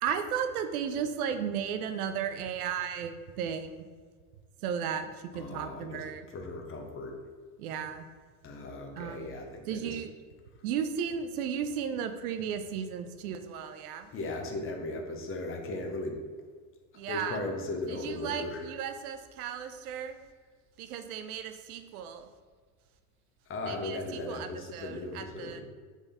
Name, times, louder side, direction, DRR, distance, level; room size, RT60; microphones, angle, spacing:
voice 1, 0.0-3.8 4.6-6.2 7.6-8.0 9.0-9.3 9.7-10.1 10.6-14.1 16.9-17.4 17.9-20.2 20.8-22.3 23.7-25.6, right 8 dB, 90° right, 8 dB, 0.6 m, -35 dB
voice 2, 5.3-7.3 8.4-10.0 14.1-16.2 17.1-18.7 23.5-25.6, left 2 dB, 30° left, 3 dB, 0.7 m, -37 dB
3.6 x 3.4 x 4.1 m, 1.6 s
supercardioid pair, 110°, 43 cm